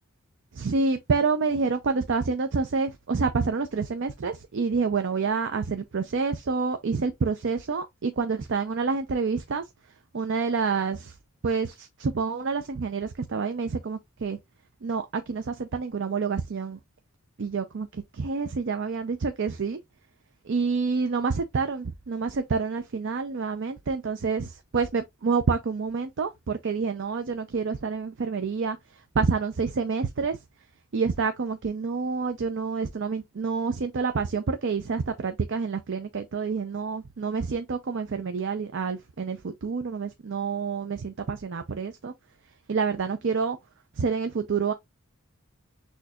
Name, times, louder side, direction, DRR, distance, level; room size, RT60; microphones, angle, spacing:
voice 1, 0.5-9.6 10.1-11.2 11.4-14.4 14.8-16.8 17.4-19.8 20.4-30.4 30.9-42.1 42.7-43.6 44.0-44.7, right 5 dB, 55° right, 0.5 m, -28 dB
6.3 x 2.8 x 2.3 m
head